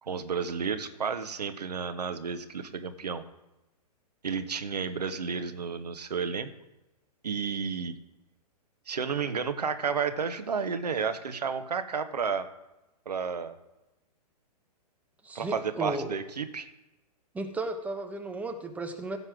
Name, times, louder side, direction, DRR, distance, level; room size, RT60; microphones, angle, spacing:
voice 1, 0.0-3.2 4.2-6.5 7.2-8.0 8.9-12.5 13.0-13.6 15.3-16.7, right 6 dB, 75° right, 10 dB, 1.2 m, -31 dB
voice 2, 15.2-16.2 17.3-19.2, right 2 dB, 5° right, 5 dB, 1.2 m, -34 dB
15.5 x 5.6 x 6.2 m, 0.98 s
figure-of-eight pair, 115°, 21 cm